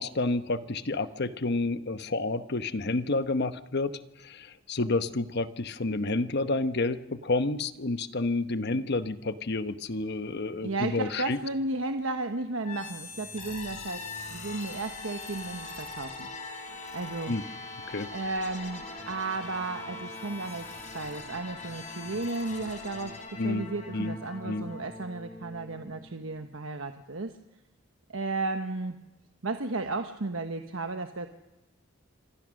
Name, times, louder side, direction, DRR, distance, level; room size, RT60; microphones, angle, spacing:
voice 1, 0.0-11.4 17.3-17.4 17.9-18.1 23.4-23.6 23.9-24.2 24.4-24.7, left 2 dB, 55° left, 11 dB, 1.0 m, -30 dB
voice 2, 10.6-16.3 16.9-17.3 18.1-20.7 20.9-27.4 28.1-29.0 29.4-31.3, right 3 dB, 85° right, 6 dB, 1.1 m, -34 dB
sound 1, 12.6-26.5, left 3 dB, 40° left, 4.2 m, -42 dB
27.0 x 24.5 x 6.4 m, 1.0 s
head